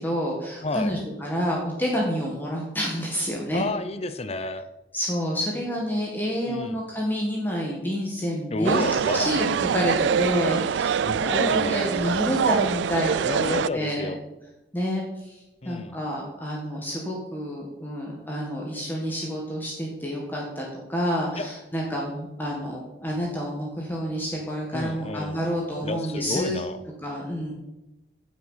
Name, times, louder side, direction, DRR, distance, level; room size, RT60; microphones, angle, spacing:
voice 1, 0.0-3.6 4.9-14.1 14.7-26.6 27.0-27.5, equal, 10° left, -2 dB, 1.8 m, -29 dB
voice 2, 0.6-0.9 3.5-4.7 6.4-6.8 8.5-9.4 11.0-11.9 13.2-14.2 15.6-16.0 21.4-21.5 24.7-25.4 25.8-26.8, left 2 dB, 35° left, 10 dB, 0.7 m, -30 dB
sound 1, 8.6-13.7, right 7 dB, 85° right, 0.3 m, -24 dB
16.0 x 6.2 x 5.8 m, 0.97 s
head